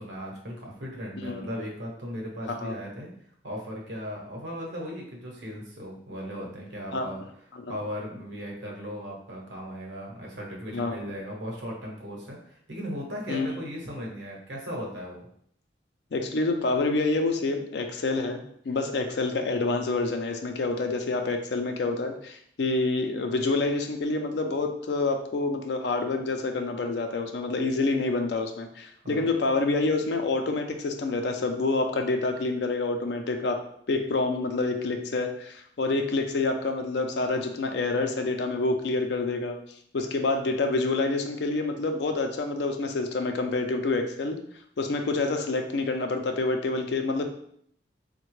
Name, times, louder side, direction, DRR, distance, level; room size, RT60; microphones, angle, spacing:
voice 1, 0.0-3.1 3.4-7.2 7.7-15.3 29.0-29.3, equal, 80° right, -1 dB, 0.9 m, -37 dB
voice 2, 1.2-1.5 2.6-2.8 6.9-7.1 7.5-7.8 10.7-11.0 13.3-13.5 16.1-39.6 39.9-44.4 44.8-47.2, left 3 dB, 70° left, 5 dB, 0.4 m, -27 dB
3.4 x 2.2 x 3.1 m, 0.66 s
head